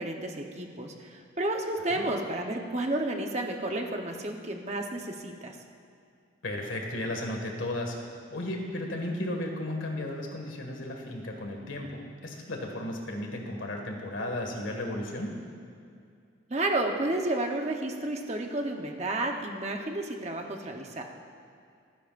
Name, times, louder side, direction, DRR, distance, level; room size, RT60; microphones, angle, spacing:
voice 1, 0.0-5.5 16.5-21.0, right 2 dB, 35° right, 2 dB, 1.0 m, -31 dB
voice 2, 6.4-8.0 8.3-15.3, left 1 dB, 85° left, 1 dB, 1.9 m, -34 dB
30.0 x 10.0 x 2.6 m, 2.3 s
head